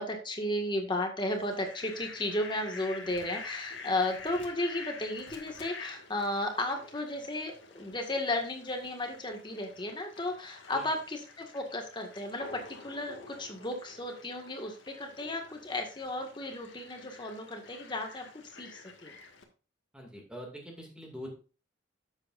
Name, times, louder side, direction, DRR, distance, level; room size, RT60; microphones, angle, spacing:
voice 1, 0.0-19.1, left 1 dB, 25° left, 3 dB, 1.8 m, -34 dB
Fowl, 1.3-19.4, left 4 dB, 70° left, 1.8 m, -49 dB
voice 2, 19.9-21.3, equal, 5° right, 0 dB, 2.3 m, -44 dB
12.0 x 7.9 x 2.6 m, 0.35 s
head